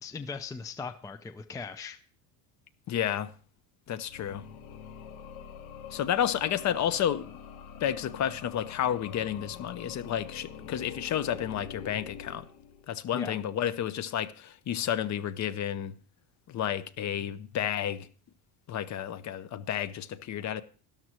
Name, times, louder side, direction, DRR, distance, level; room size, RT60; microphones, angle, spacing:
voice 1, 0.0-2.0 13.1-13.4, left 4 dB, 10° left, 0.5 m, -39 dB
voice 2, 2.9-3.3 3.9-4.5 5.9-7.3 7.8-12.5 12.9-15.9 16.5-18.1 18.7-20.6, left 10 dB, 35° left, 0.7 m, -31 dB
sound 1, 4.0-13.1, left 7 dB, 70° left, 1.9 m, -45 dB
12.5 x 12.0 x 3.0 m
cardioid pair, 130°, 47 cm